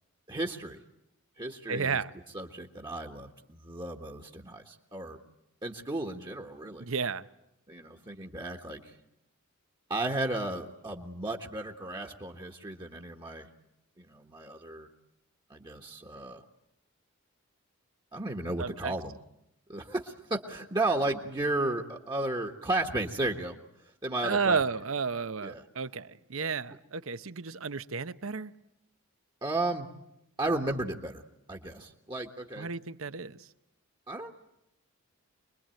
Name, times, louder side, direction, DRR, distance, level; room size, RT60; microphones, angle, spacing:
voice 1, 0.3-0.8 1.4-2.0 2.3-5.2 5.6-6.9 7.7-9.0 9.9-13.5 14.0-14.9 15.5-16.4 18.1-19.2 19.7-23.6 23.8-24.6 25.4-25.6 29.4-29.9 30.4-31.2 31.5-32.7 34.1-34.3, right 2 dB, 20° right, 1.4 m, -34 dB
voice 2, 1.7-2.1 6.8-7.3 18.6-18.9 24.2-28.5 32.6-33.5, right 5 dB, 70° right, 0.9 m, -32 dB
25.5 x 21.5 x 9.1 m
head